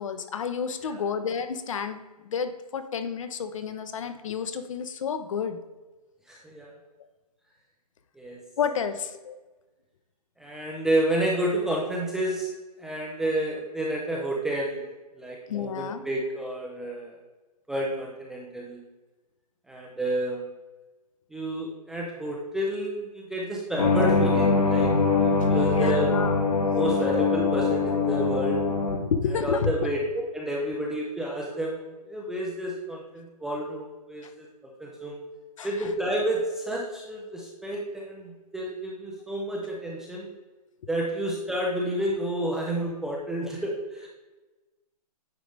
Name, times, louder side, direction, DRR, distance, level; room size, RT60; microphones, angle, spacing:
voice 1, 0.0-5.6 8.6-9.4 15.5-16.0 25.4-26.4 28.9-29.9 34.2-34.3 35.6-35.9, left 6 dB, 50° left, 10 dB, 0.8 m, -31 dB
voice 2, 6.3-6.7 8.2-8.4 10.4-12.5 12.8-14.9 15.1-17.2 17.7-18.8 19.7-20.4 21.3-26.1 26.7-28.6 29.4-34.5 34.8-35.2 35.6-40.3 40.9-44.1, right 1 dB, ahead, -3 dB, 0.4 m, -30 dB
sound 1, 23.8-29.0, left 4 dB, 75° left, 1.7 m, -23 dB
9.3 x 5.0 x 3.3 m, 1.2 s
hypercardioid pair, 150°, 20 cm